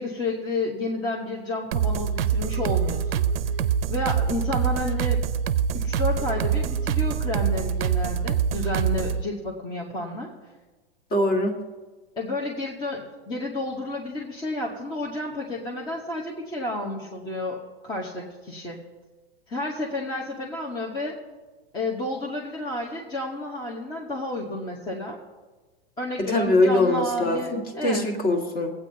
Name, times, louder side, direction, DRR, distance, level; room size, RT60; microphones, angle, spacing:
voice 1, 0.0-3.2 3.9-5.2 5.7-10.3 12.2-18.8 19.5-21.2 21.7-25.2 26.0-28.1, left 2 dB, 15° left, -2 dB, 0.9 m, -31 dB
sound 1, 1.7-9.2, right 7 dB, 75° right, 0.6 m, -25 dB
voice 2, 11.1-11.6 26.2-28.7, left 2 dB, 30° left, 3 dB, 1.6 m, -22 dB
22.0 x 8.4 x 2.7 m, 1.3 s
supercardioid pair, 150°, 30 cm